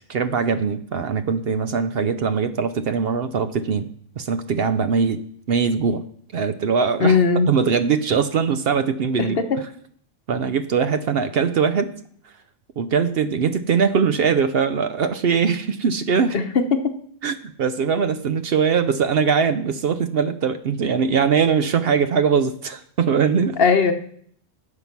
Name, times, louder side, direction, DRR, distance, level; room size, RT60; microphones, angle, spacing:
voice 1, 0.1-3.9 4.2-5.2 5.5-6.0 6.3-7.2 7.5-9.4 10.3-11.9 12.8-16.4 17.2-23.6, right 6 dB, 60° right, 10 dB, 0.8 m, -21 dB
voice 2, 7.0-7.5 16.3-16.9 23.6-23.9, left 5 dB, 55° left, 8 dB, 1.0 m, -18 dB
9.6 x 7.2 x 5.9 m, 0.62 s
omnidirectional pair, 1.3 m